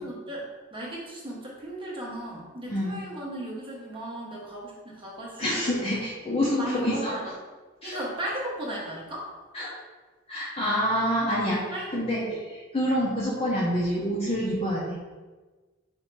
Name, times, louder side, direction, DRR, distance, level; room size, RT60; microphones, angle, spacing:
voice 1, 0.0-5.8 6.6-7.3 7.8-9.3 11.7-12.4, right 1 dB, 25° right, -4 dB, 0.9 m, -36 dB
voice 2, 5.4-7.1 7.8-8.0 9.5-9.7 10.3-11.6 11.9-12.2 12.7-15.0, equal, 30° left, -7 dB, 0.7 m, -27 dB
4.3 x 2.7 x 4.5 m, 1.3 s
head